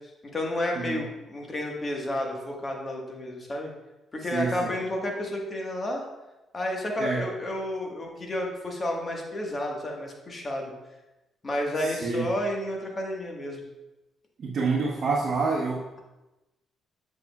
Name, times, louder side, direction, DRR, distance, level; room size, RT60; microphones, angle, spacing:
voice 1, 0.3-3.7 4.1-6.0 6.5-10.7 11.4-13.6, left 1 dB, 30° left, 0 dB, 1.5 m, -31 dB
voice 2, 4.2-4.7 7.0-7.2 11.8-12.3 14.4-16.0, right 4 dB, 50° right, -3 dB, 1.0 m, -28 dB
7.6 x 6.9 x 2.4 m, 1.0 s
cardioid pair, 90°, 0 cm